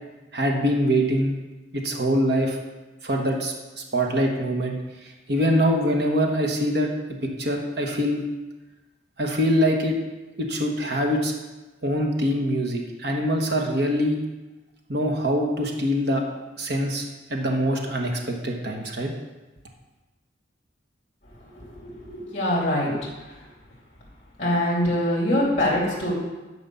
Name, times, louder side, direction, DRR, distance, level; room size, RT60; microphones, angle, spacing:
voice 1, 0.3-1.3 1.7-2.6 3.0-3.5 3.9-4.8 5.0-8.2 9.2-10.0 10.4-11.3 11.8-14.2 14.9-16.3 16.6-17.0 17.3-19.1, equal, 60° right, 2 dB, 1.3 m, -24 dB
voice 2, 21.6-22.9 24.4-26.1, left 1 dB, 35° left, -5 dB, 2.9 m, -24 dB
11.0 x 5.0 x 6.9 m, 1.1 s
head